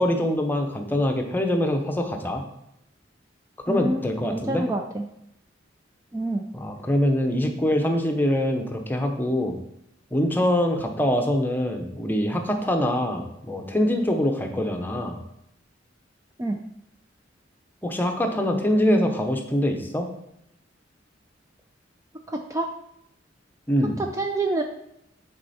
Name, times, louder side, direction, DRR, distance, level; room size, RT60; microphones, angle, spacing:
voice 1, 0.0-2.4 3.7-4.7 6.5-9.6 10.1-15.2 17.8-20.1 23.7-24.0, left 1 dB, 10° left, 4 dB, 0.8 m, -24 dB
voice 2, 3.7-4.0 4.3-5.0 6.1-6.5 16.4-16.6 22.3-22.7 24.2-24.6, right 2 dB, 15° right, 3 dB, 0.4 m, -27 dB
9.6 x 4.3 x 4.2 m, 0.79 s
head